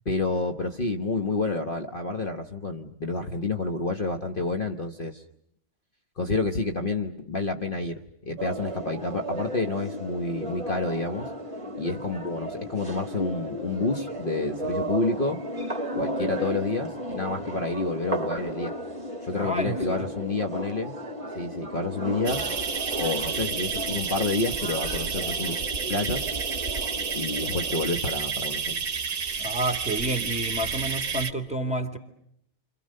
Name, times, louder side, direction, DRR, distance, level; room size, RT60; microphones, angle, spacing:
voice 1, 0.0-5.2 6.2-11.3 11.8-15.4 15.9-18.7 19.2-20.9 21.3-22.4 23.0-25.6 25.9-26.3 27.1-28.8, left 3 dB, 45° left, 4 dB, 1.3 m, -29 dB
sound 1, 8.4-27.9, equal, 25° right, 2.1 m, -34 dB
voice 2, 19.4-20.1 29.4-32.0, right 1 dB, 5° right, 5 dB, 2.3 m, -29 dB
sound 2, 22.2-31.3, right 6 dB, 45° right, 1.4 m, -30 dB
29.5 x 26.0 x 6.5 m, 0.72 s
omnidirectional pair, 1.4 m